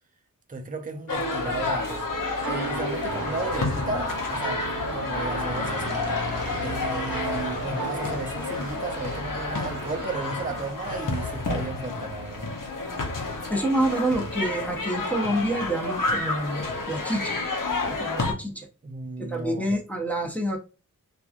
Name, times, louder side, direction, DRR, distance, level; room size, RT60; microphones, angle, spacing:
voice 1, 0.5-4.6 4.9-6.0 6.6-12.5 18.8-19.8, right 3 dB, 25° right, 0.5 m, -34 dB
sound 1, 1.1-18.3, left 3 dB, 65° left, 0.8 m, -30 dB
sound 2, 1.6-10.7, right 1 dB, 45° right, 0.8 m, -39 dB
sound 3, 2.1-8.2, right 5 dB, 85° right, 0.6 m, -37 dB
voice 2, 13.5-16.6 16.9-17.3 17.9-18.7 19.2-20.6, right 1 dB, 5° left, 0.8 m, -27 dB
2.9 x 2.4 x 2.4 m
wide cardioid pair, 50°, 34 cm